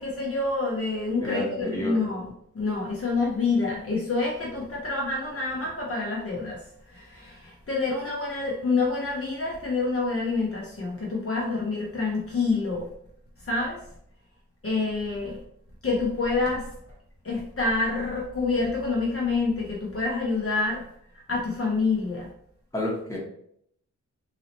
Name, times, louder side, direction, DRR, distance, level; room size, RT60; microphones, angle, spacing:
voice 1, 0.0-2.3 2.5-12.9 13.4-13.9 14.6-15.4 15.8-16.7 17.2-20.9 21.1-22.3, left 3 dB, 45° left, -4 dB, 0.8 m, -27 dB
voice 2, 1.2-2.0 22.7-23.2, left 1 dB, 10° left, -4 dB, 1.4 m, -30 dB
4.0 x 2.8 x 2.9 m, 0.69 s
wide cardioid pair, 70°, 32 cm